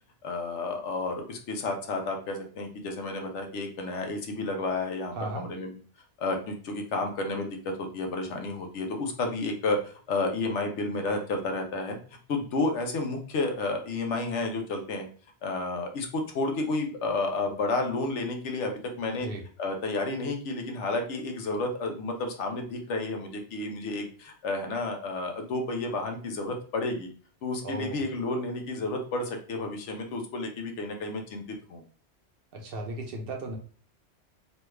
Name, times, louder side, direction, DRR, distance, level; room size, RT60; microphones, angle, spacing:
voice 1, 0.2-5.7 6.2-12.0 12.3-15.1 15.4-19.3 19.6-27.1 27.4-31.8, left 2 dB, 75° left, 4 dB, 1.0 m, -31 dB
voice 2, 5.2-5.5 19.2-19.4 27.6-28.1 32.5-33.6, right 2 dB, 60° right, 2 dB, 0.8 m, -36 dB
3.1 x 2.3 x 3.1 m, 0.42 s
omnidirectional pair, 1.2 m